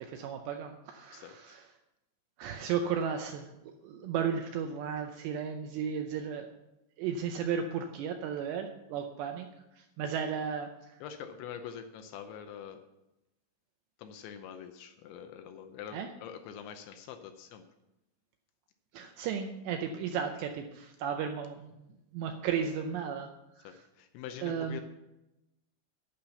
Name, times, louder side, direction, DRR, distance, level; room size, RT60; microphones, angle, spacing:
voice 1, 0.0-1.6 2.4-3.5 3.8-6.5 7.0-9.5 9.8-10.7 15.9-16.1 18.9-23.3 23.6-23.8 24.4-24.8, right 7 dB, 80° right, 5 dB, 2.5 m, -34 dB
voice 2, 1.1-1.6 11.0-12.8 14.0-17.7 23.6-24.8, left 8 dB, 80° left, 7 dB, 2.8 m, -45 dB
12.0 x 5.9 x 6.9 m, 0.92 s
omnidirectional pair, 5.7 m